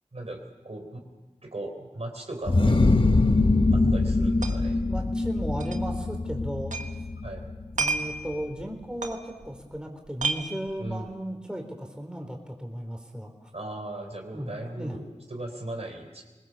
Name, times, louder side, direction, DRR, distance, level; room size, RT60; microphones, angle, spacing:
voice 1, 0.1-1.0 1.4-2.7 3.7-4.8 7.2-7.5 10.8-11.2 13.5-16.2, right 1 dB, 55° right, 3 dB, 3.8 m, -38 dB
sound 1, 2.5-8.0, left 2 dB, 45° left, 1.2 m, -23 dB
voice 2, 3.7-4.0 4.8-6.7 7.8-13.5 14.3-15.0, equal, 5° right, 3 dB, 4.1 m, -35 dB
sound 2, 3.8-3.9 4.1-4.8 5.0-5.1 5.6-6.9 7.2-9.8 10.0-11.1, right 4 dB, 85° right, 1.5 m, -32 dB
24.0 x 20.0 x 7.1 m, 1.2 s
wide cardioid pair, 45°, 13 cm